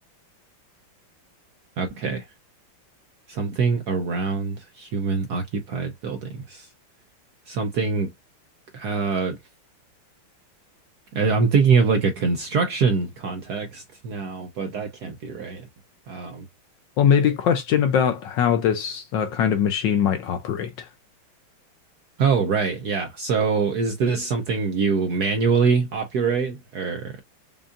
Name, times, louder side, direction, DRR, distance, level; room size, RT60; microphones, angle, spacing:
voice 1, 1.8-2.2 3.3-6.7 7.5-8.1 8.7-9.4 11.1-15.7 16.1-16.4 22.2-27.2, right 5 dB, 65° right, 1.0 m, -24 dB
voice 2, 17.0-20.9, left 8 dB, 75° left, 1.1 m, -21 dB
5.3 x 2.3 x 2.5 m
omnidirectional pair, 2.4 m